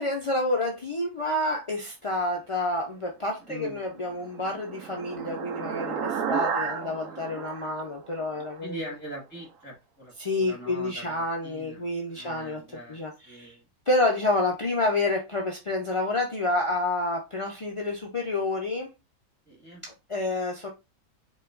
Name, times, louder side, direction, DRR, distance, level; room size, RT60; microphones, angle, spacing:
voice 1, 0.0-8.8 10.2-12.6 12.9-13.5 13.9-18.9 19.8-20.7, left 2 dB, 45° left, 0.4 m, -29 dB
voice 2, 3.4-3.8 6.2-7.4 8.6-11.8 12.1-13.6 19.5-19.8, right 1 dB, 5° left, 2.0 m, -43 dB
sound 1, 3.8-8.6, right 6 dB, 65° right, 1.0 m, -33 dB
4.8 x 3.0 x 2.4 m
omnidirectional pair, 1.6 m